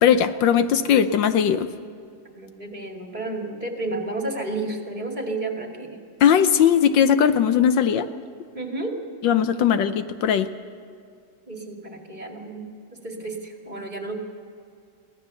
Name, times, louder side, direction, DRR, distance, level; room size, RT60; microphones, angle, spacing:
voice 1, 0.0-1.7 6.2-8.1 9.2-10.5, left 8 dB, 75° left, 11 dB, 1.4 m, -19 dB
voice 2, 2.2-6.0 8.5-9.0 9.6-9.9 11.5-14.2, right 2 dB, 25° right, 2 dB, 2.3 m, -32 dB
23.0 x 17.0 x 6.9 m, 2.4 s
omnidirectional pair, 2.1 m